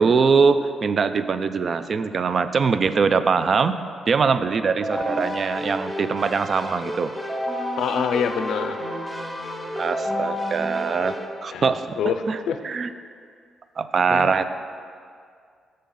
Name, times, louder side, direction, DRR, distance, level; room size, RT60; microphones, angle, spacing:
voice 1, 0.0-3.7 4.1-7.1 9.8-12.0 12.3-12.4 12.6-12.9 13.8-14.4, right 5 dB, 55° right, 12 dB, 0.3 m, -22 dB
Keyboard (musical), 4.7-11.3, equal, 5° right, 1.0 m, -30 dB
voice 2, 7.8-8.8 11.5-11.7 12.0-12.6 14.1-14.3, left 7 dB, 75° left, 7 dB, 0.4 m, -25 dB
6.9 x 6.4 x 3.8 m, 2.2 s
supercardioid pair, 60°, 0 cm